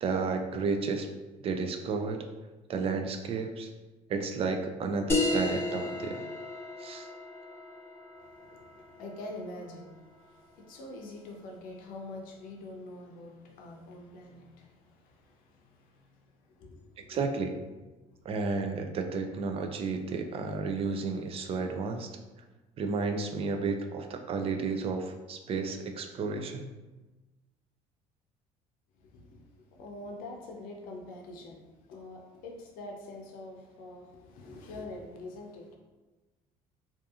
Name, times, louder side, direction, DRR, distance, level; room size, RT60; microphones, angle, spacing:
voice 1, 0.0-1.1 1.4-2.2 2.7-3.7 4.1-6.3 6.8-7.1 17.0-17.6 18.3-22.1 22.8-26.7, right 4 dB, 40° right, 5 dB, 0.4 m, -32 dB
sound 1, 5.1-10.2, left 2 dB, 15° left, 0.6 m, -34 dB
voice 2, 8.2-17.2 18.1-18.2 29.0-35.8, left 2 dB, 75° left, 1 dB, 0.6 m, -45 dB
2.7 x 2.4 x 2.3 m, 1.2 s
cardioid pair, 100°, 15 cm